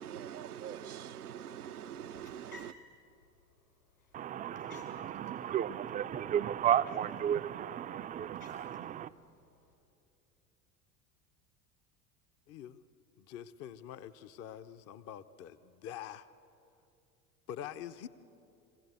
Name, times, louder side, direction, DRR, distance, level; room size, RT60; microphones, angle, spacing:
voice 1, 0.0-2.7, right 9 dB, 80° right, 0.6 m, -44 dB
sound 1, 1.9-9.7, left 3 dB, 85° left, 4.5 m, -59 dB
voice 2, 4.1-9.1, right 10 dB, 20° right, 0.4 m, -33 dB
voice 3, 12.5-12.8 13.2-16.3 17.5-18.1, left 10 dB, 35° left, 0.7 m, -45 dB
24.0 x 16.5 x 8.2 m
figure-of-eight pair, 70°, 44 cm